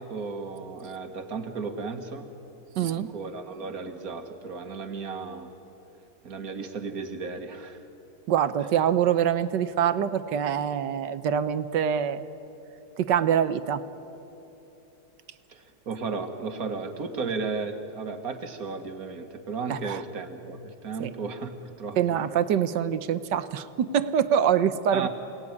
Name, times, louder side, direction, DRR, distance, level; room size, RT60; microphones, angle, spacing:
voice 1, 0.0-2.3 2.8-5.5 6.2-7.8 15.5-22.2 24.9-25.1, right 4 dB, 45° right, 6 dB, 2.0 m, -34 dB
voice 2, 2.8-3.1 8.3-12.2 13.0-13.8 19.7-20.0 21.0-21.1 22.0-25.1, right 9 dB, 65° right, 12 dB, 1.4 m, -25 dB
27.5 x 19.0 x 9.7 m, 3.0 s
omnidirectional pair, 2.2 m